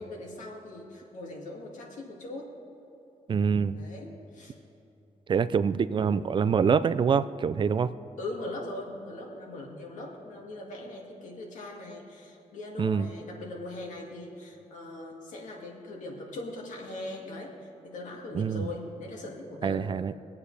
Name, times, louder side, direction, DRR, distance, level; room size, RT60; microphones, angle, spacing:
voice 1, 0.0-2.5 3.7-4.5 8.2-19.9, left 2 dB, 85° left, -1 dB, 2.1 m, -40 dB
voice 2, 3.3-3.8 5.3-7.9 12.8-13.1 18.3-18.7 19.6-20.1, right 6 dB, 40° right, 14 dB, 0.4 m, -25 dB
23.0 x 8.3 x 3.3 m, 2.9 s
cardioid pair, 120°, 13 cm